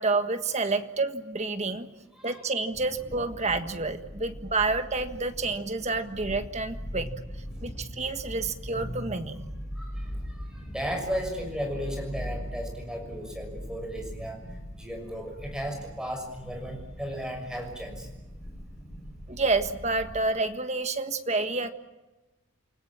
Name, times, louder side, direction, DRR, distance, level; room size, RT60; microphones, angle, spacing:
voice 1, 0.0-1.9 2.2-7.1 7.6-9.4 19.3-21.7, right 3 dB, 35° right, 8 dB, 1.6 m, -29 dB
sound 1, 2.7-20.2, equal, 15° left, 5.6 m, -40 dB
voice 2, 9.8-10.1 10.4-14.4 14.8-18.1, equal, 5° right, 3 dB, 6.4 m, -35 dB
29.0 x 20.5 x 7.4 m, 1.1 s
head